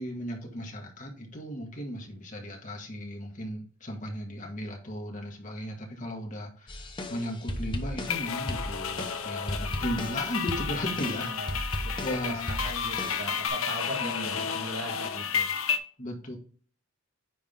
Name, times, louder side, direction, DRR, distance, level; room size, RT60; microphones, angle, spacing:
voice 1, 0.0-11.3 12.0-12.7 14.0-14.6 16.0-16.4, equal, 40° left, 1 dB, 1.8 m, -36 dB
sound 1, 6.7-13.5, left 1 dB, 25° left, 0.8 m, -36 dB
sound 2, 8.1-15.8, left 7 dB, 85° left, 1.0 m, -32 dB
voice 2, 10.9-11.9 12.2-15.5, right 1 dB, 70° right, 2 dB, 1.8 m, -39 dB
9.4 x 3.7 x 3.7 m, 0.43 s
head